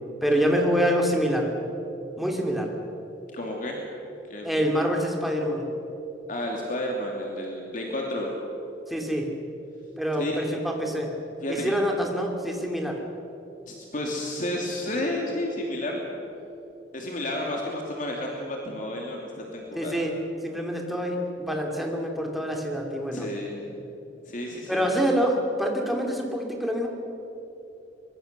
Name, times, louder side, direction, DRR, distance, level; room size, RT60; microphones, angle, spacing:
voice 1, 0.2-1.5 2.2-2.7 4.4-5.6 8.9-9.3 10.0-11.1 11.5-13.0 19.7-20.1 20.4-23.3 24.7-26.9, equal, ahead, 0 dB, 3.0 m, -26 dB
voice 2, 3.3-3.8 4.3-4.6 6.3-8.3 10.2-10.4 11.4-11.7 13.7-16.0 16.9-20.0 23.1-23.8 24.3-24.9, left 1 dB, 45° left, -1 dB, 2.7 m, -31 dB
23.5 x 22.5 x 6.8 m, 3.0 s
head